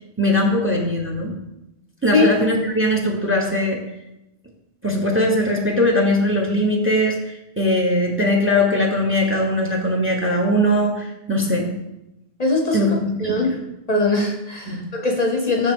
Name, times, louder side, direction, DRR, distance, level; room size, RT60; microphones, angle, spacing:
voice 1, 0.2-1.4 2.0-3.8 4.8-11.7 12.7-13.6 14.7-14.8, left 1 dB, 10° right, 2 dB, 0.9 m, -20 dB
voice 2, 12.4-12.8 13.2-13.5 13.9-15.7, left 2 dB, 40° left, 1 dB, 0.8 m, -20 dB
6.3 x 6.1 x 3.7 m, 0.91 s
omnidirectional pair, 1.1 m